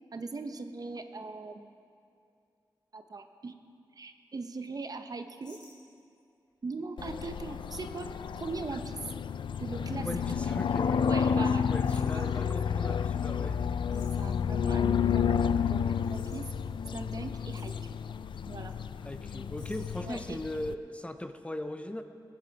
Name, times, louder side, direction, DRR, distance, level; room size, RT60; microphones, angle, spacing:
voice 1, 0.1-1.7 2.9-3.6 4.0-5.6 6.6-8.1 8.4-9.0 9.6-10.1 10.4-10.5 11.0-11.6 12.1-12.2 13.9-16.5 16.9-18.0 18.5-18.7 20.0-20.4, right 3 dB, 50° right, 8 dB, 0.8 m, -40 dB
sound 1, 5.4-6.2 6.8-7.0 7.6-7.7 8.2-8.5 9.7-10.7 11.8-12.2 13.9-14.3 15.9-16.5 17.1-17.2 17.3-17.9 18.7-18.8 19.1-19.2 19.6-20.0, left 1 dB, 65° left, 3.7 m, -54 dB
sound 2, 7.0-20.7, left 7 dB, 80° left, 0.4 m, -30 dB
voice 2, 10.0-13.7 19.0-22.0, left 1 dB, 15° left, 8 dB, 0.6 m, -39 dB
19.0 x 9.9 x 4.7 m, 2.5 s
wide cardioid pair, 95°, 8 cm